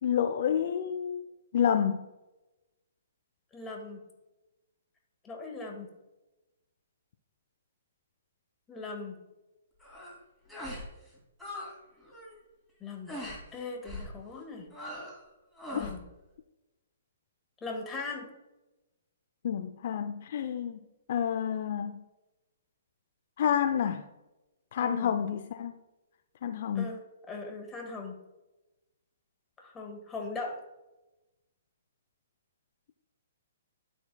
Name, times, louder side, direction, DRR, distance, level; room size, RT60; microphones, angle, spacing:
voice 1, 0.0-1.3 1.5-2.0 15.7-15.9 19.4-20.8 21.1-22.0 23.4-24.0 24.7-25.8 26.4-26.9, left 8 dB, 55° left, 7 dB, 0.5 m, -29 dB
voice 2, 3.5-4.0 5.2-5.9 8.7-9.2 12.8-13.1 13.5-14.7 15.7-16.0 17.6-18.3 24.8-25.1 26.7-28.1 29.6-30.6, left 3 dB, 15° left, 1 dB, 1.7 m, -39 dB
sound 1, 9.8-10.2 10.5-10.9 11.1-11.7 12.0-12.3 13.1-13.4 13.8-14.1 14.7-15.2 15.6-16.0, left 1 dB, 5° right, 2.5 m, -40 dB
13.5 x 4.5 x 2.3 m, 1.0 s
hypercardioid pair, 135°, 0 cm